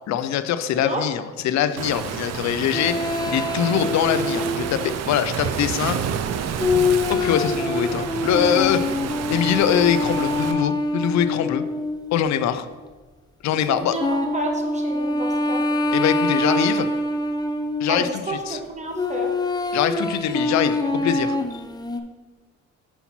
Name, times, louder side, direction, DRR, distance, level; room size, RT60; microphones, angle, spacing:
voice 1, 0.1-6.0 7.1-8.9 9.3-11.6 12.1-12.7 13.4-14.0 15.9-16.9 17.8-18.6 19.7-21.6, left 9 dB, 65° left, 11 dB, 0.5 m, -23 dB
Waves surf, 1.8-10.5, right 7 dB, 60° right, 0.6 m, -29 dB
sound 1, 2.7-5.0 6.6-12.6 14.0-18.0 18.9-22.0, left 2 dB, 15° left, 0.6 m, -25 dB
voice 2, 13.7-15.6 17.9-19.3, right 1 dB, 25° right, 2 dB, 1.3 m, -30 dB
5.7 x 5.6 x 4.3 m, 1.3 s
cardioid pair, 90°, 30 cm